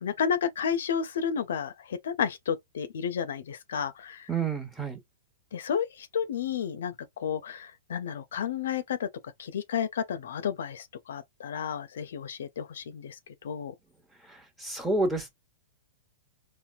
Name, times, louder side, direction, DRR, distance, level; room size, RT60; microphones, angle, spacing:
voice 1, 0.0-4.3 5.5-9.1 9.4-13.7, left 7 dB, 75° left, 0.4 m, -32 dB
voice 2, 4.3-5.0 14.3-15.3, right 3 dB, 5° right, 1.1 m, -29 dB
4.1 x 2.1 x 2.3 m
hypercardioid pair, 115°, 0 cm